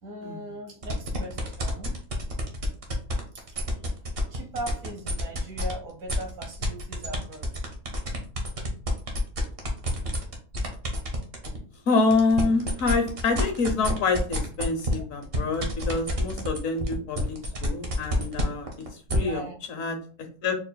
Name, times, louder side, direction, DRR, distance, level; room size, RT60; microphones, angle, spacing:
voice 1, 0.0-2.0 3.3-3.5 4.3-7.6 19.2-19.6, right 1 dB, 85° right, 2 dB, 1.7 m, -39 dB
sound 1, 0.8-5.7 6.1-11.6 12.0-19.2, right 1 dB, 45° right, 1.1 m, -30 dB
voice 2, 11.9-17.4 17.6-18.7 19.1-19.4 19.7-20.0 20.4-20.6, left 3 dB, 65° left, 5 dB, 1.3 m, -26 dB
4.3 x 4.0 x 2.2 m, 0.39 s
omnidirectional pair, 1.5 m